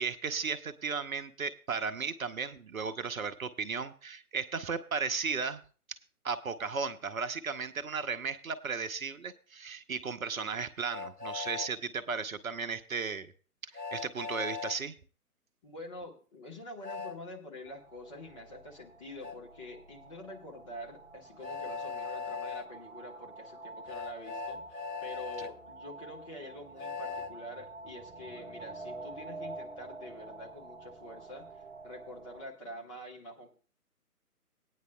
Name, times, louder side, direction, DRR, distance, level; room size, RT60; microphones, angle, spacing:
voice 1, 0.0-5.6 5.9-6.0 6.2-13.3 13.7-15.0, right 5 dB, 60° right, 10 dB, 0.8 m, -35 dB
Train, 10.9-11.7 13.7-14.8 16.8-17.2 19.2-19.4 21.4-22.6 23.9-25.5 26.8-27.3, left 5 dB, 85° left, 1.3 m, -39 dB
voice 2, 15.6-33.5, left 1 dB, 20° left, 0 dB, 1.3 m, -46 dB
sound 1, 17.7-32.4, right 3 dB, 20° right, 2.1 m, -48 dB
19.5 x 9.5 x 2.2 m, 0.38 s
figure-of-eight pair, 145°, 46 cm